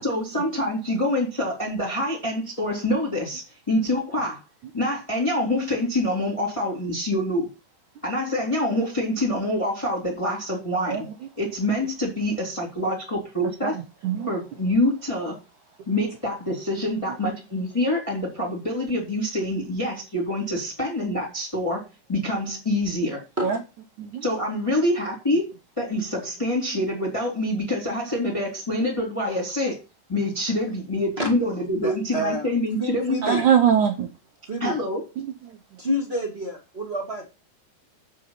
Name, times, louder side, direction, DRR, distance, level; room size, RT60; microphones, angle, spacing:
voice 1, 0.0-4.4 4.7-7.5 8.0-11.0 11.4-13.8 14.3-15.4 15.9-21.8 22.1-23.2 24.2-25.5 25.8-29.7 30.1-33.4 34.6-35.0, left 1 dB, 10° left, -2 dB, 2.7 m, -26 dB
voice 2, 13.6-14.3 18.4-18.5 23.4-23.6 24.0-24.2 33.2-34.1 35.5-35.6, right 8 dB, 75° right, 7 dB, 1.8 m, -22 dB
voice 3, 31.8-32.5 32.8-33.4 34.5-34.8 35.8-37.3, equal, 25° right, 1 dB, 1.4 m, -28 dB
8.5 x 7.3 x 5.8 m, 0.28 s
omnidirectional pair, 5.1 m